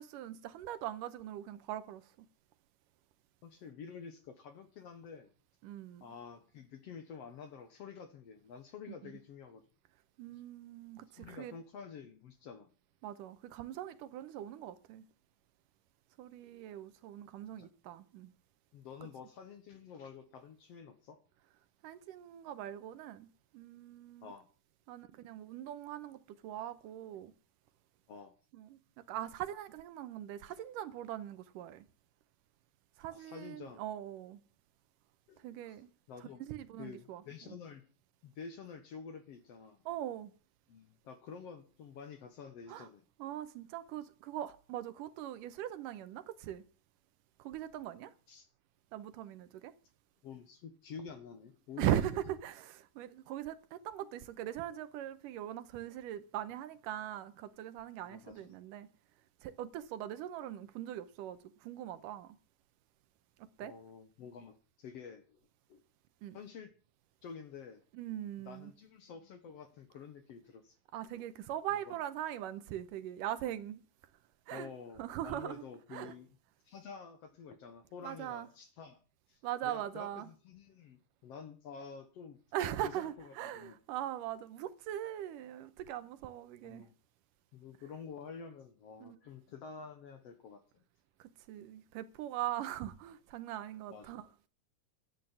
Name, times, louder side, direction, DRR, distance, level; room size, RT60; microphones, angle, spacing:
voice 1, 0.0-2.3 5.6-6.1 9.0-9.1 10.2-11.5 13.0-15.0 16.2-18.3 21.8-24.3 24.9-27.3 28.5-31.9 33.0-34.4 35.4-35.9 36.4-37.6 39.9-40.3 42.7-42.9 43.2-46.6 47.4-48.1 48.9-49.7 51.8-58.9 59.4-62.4 63.4-63.7 66.2-66.4 67.9-68.7 70.9-73.8 74.5-74.7 75.0-75.6 75.9-76.1 78.0-78.5 79.4-80.3 82.5-86.9 89.0-89.2 91.2-94.2, right 12 dB, 80° right, 2.4 m, -41 dB
voice 2, 3.4-5.3 6.0-9.6 11.1-12.7 17.6-17.7 18.7-21.2 24.2-24.5 24.9-25.1 28.1-28.4 30.5-30.6 33.1-33.8 35.3-35.8 36.1-36.4 36.8-37.8 38.2-39.8 40.7-43.0 48.3-48.5 50.2-52.1 58.1-58.5 63.6-65.4 65.7-65.8 66.3-66.7 67.2-67.8 68.5-70.8 71.9-72.0 74.5-76.3 76.7-79.0 79.3-82.4 82.8-83.8 86.6-86.9 87.5-90.8 93.9-94.2, left 6 dB, 60° left, 1.8 m, -49 dB
13.0 x 9.3 x 7.3 m
omnidirectional pair, 3.9 m